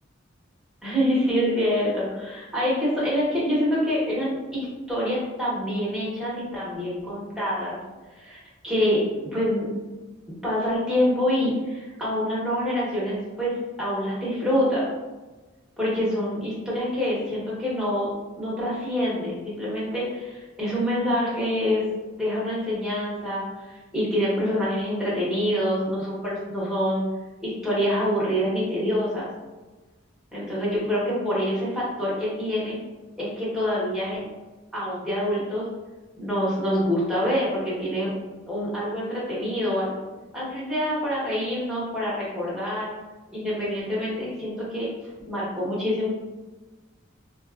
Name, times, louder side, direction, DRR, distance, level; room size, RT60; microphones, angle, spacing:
voice 1, 0.8-7.8 8.1-9.0 9.3-9.7 10.4-14.9 15.8-18.1 18.4-21.8 22.2-27.0 27.4-29.3 30.3-32.8 33.2-34.2 34.7-35.7 36.2-38.1 38.5-39.9 40.3-42.9 43.3-44.9 45.2-46.1, equal, 5° right, -8 dB, 1.1 m, -26 dB
3.9 x 2.3 x 2.4 m, 1.2 s
head